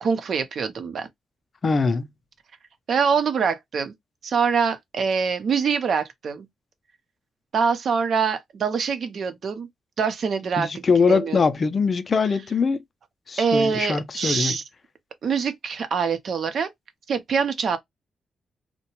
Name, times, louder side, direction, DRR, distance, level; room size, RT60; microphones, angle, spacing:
voice 1, 0.0-1.1 2.9-3.9 4.2-6.5 7.5-9.7 10.0-10.8 11.1-11.4 13.4-14.6 15.2-16.7 17.1-17.8, right 6 dB, 65° right, 0.6 m, -24 dB
voice 2, 1.6-2.1 10.6-12.8 13.3-14.6, left 5 dB, 40° left, 0.4 m, -22 dB
2.8 x 2.1 x 2.9 m
cardioid pair, 100°, 0 cm